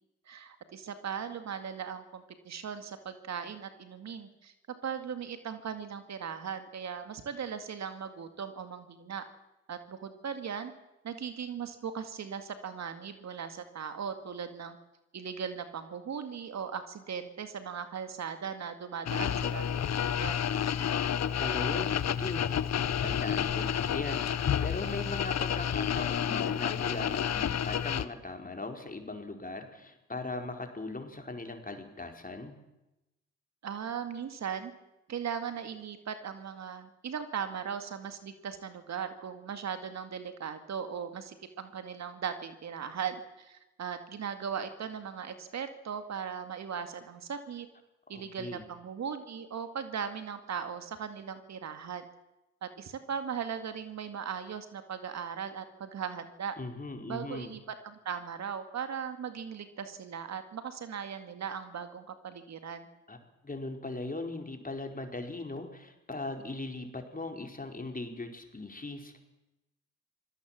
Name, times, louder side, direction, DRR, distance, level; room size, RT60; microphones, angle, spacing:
voice 1, 0.3-4.5 4.8-9.2 9.7-10.7 11.0-14.8 15.1-20.3 33.6-34.7 35.1-47.7 48.1-52.1 52.6-56.6 57.1-62.9, right 7 dB, 65° right, 9 dB, 2.2 m, -38 dB
sound 1, 19.1-28.0, left 9 dB, 60° left, 1.1 m, -30 dB
voice 2, 21.1-32.6 48.1-48.6 56.6-57.5 63.1-63.2 63.4-69.2, left 2 dB, 30° left, 4 dB, 4.7 m, -39 dB
25.5 x 18.5 x 7.6 m, 0.94 s
supercardioid pair, 45°, 29 cm